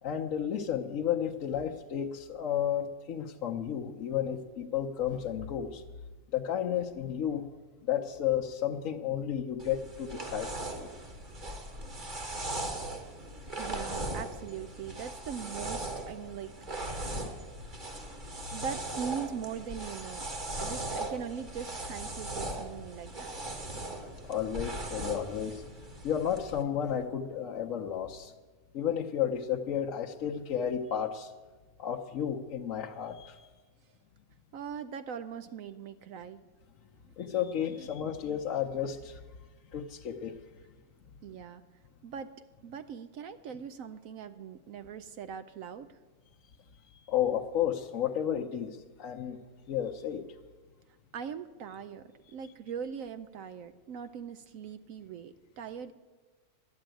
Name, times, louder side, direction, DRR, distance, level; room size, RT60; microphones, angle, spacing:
voice 1, 0.0-5.8 6.3-7.5 7.8-10.5 10.8-10.9 18.5-18.6 24.2-25.6 26.0-28.3 28.7-31.3 31.8-33.5 37.2-39.2 39.7-40.4 46.9-49.4 49.7-50.2, left 9 dB, 65° left, -1 dB, 1.1 m, -32 dB
sound 1, 9.6-26.6, right 1 dB, 35° right, 1.6 m, -39 dB
voice 2, 13.5-16.5 18.5-20.3 20.6-23.3 34.5-36.4 37.7-37.9 41.2-41.6 42.0-42.3 42.6-46.0 51.1-55.9, right 7 dB, 70° right, 11 dB, 0.9 m, -41 dB
12.0 x 9.7 x 9.0 m, 1.3 s
omnidirectional pair, 1.5 m